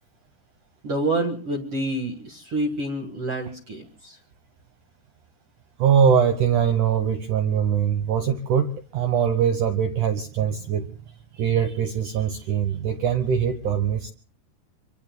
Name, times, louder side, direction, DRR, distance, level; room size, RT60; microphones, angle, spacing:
voice 1, 0.8-4.2, right 1 dB, 55° right, 3 dB, 1.7 m, -28 dB
voice 2, 5.8-10.9 11.3-14.1, right 8 dB, 80° right, 7 dB, 1.8 m, -22 dB
26.0 x 25.0 x 2.2 m, 0.39 s
omnidirectional pair, 5.0 m